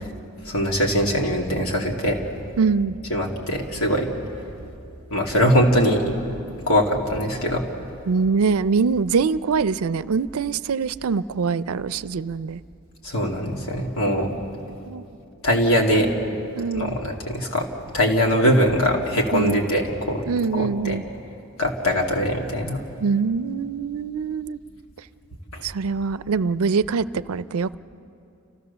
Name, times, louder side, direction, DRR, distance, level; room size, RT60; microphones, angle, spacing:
voice 1, 0.4-2.3 3.1-4.1 5.1-6.1 6.7-7.6 13.0-14.3 15.4-16.1 16.7-17.7 17.9-20.2 20.5-21.0 21.6-22.8 25.5-25.6, equal, 70° left, 0 dB, 2.7 m, -22 dB
voice 2, 2.6-3.0 8.1-12.6 14.9-15.0 16.6-17.0 19.3-19.6 20.3-21.0 23.0-24.6 25.6-27.7, right 5 dB, 75° right, 16 dB, 0.5 m, -23 dB
29.5 x 15.5 x 6.9 m, 2.6 s
head